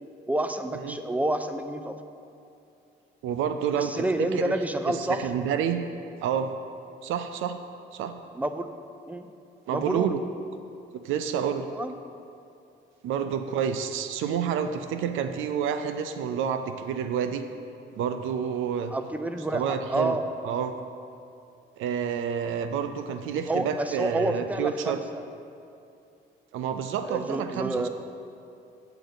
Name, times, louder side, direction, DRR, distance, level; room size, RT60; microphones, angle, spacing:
voice 1, 0.3-2.0 3.7-5.3 8.3-8.7 9.1-9.3 9.7-10.2 11.7-11.9 18.9-20.2 23.5-25.2 27.0-27.9, right 1 dB, 5° right, 8 dB, 0.5 m, -29 dB
voice 2, 3.2-4.5 4.9-5.8 6.2-6.5 7.0-7.6 7.9-8.1 9.7-10.2 11.0-11.7 13.0-17.4 17.9-18.9 19.5-20.2 20.4-20.7 21.8-25.0 26.5-27.9, right 8 dB, 85° right, 9 dB, 0.5 m, -29 dB
9.0 x 6.8 x 3.9 m, 2.6 s
cardioid pair, 90°, 20 cm